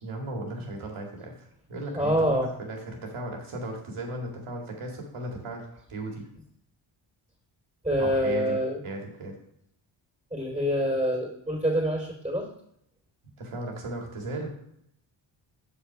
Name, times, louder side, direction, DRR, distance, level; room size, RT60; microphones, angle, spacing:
voice 1, 0.0-6.3 8.0-8.6 8.8-9.3 13.4-14.5, right 1 dB, 75° right, 0 dB, 2.4 m, -36 dB
voice 2, 1.9-2.5 7.8-8.8 10.3-12.5, equal, 15° right, -1 dB, 2.9 m, -26 dB
6.6 x 6.0 x 4.6 m, 0.72 s
cardioid pair, 75°, 50 cm